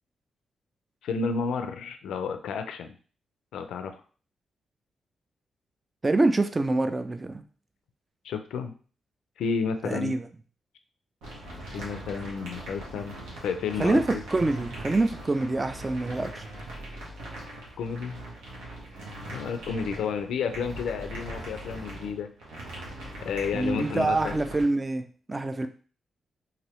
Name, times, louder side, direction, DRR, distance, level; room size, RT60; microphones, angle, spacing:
voice 1, 1.0-2.9 3.5-4.0 8.2-8.8 9.4-10.2 11.7-13.2 13.4-14.2 17.8-18.2 19.3-22.3 23.2-24.4, left 5 dB, 80° left, 8 dB, 0.4 m, -31 dB
voice 2, 6.0-7.4 9.8-10.3 13.8-16.5 23.5-25.7, right 2 dB, 30° right, 9 dB, 0.4 m, -26 dB
sound 1, 11.2-24.6, right 1 dB, 85° right, 0.9 m, -40 dB
2.9 x 2.7 x 2.9 m, 0.40 s
supercardioid pair, 45°, 0 cm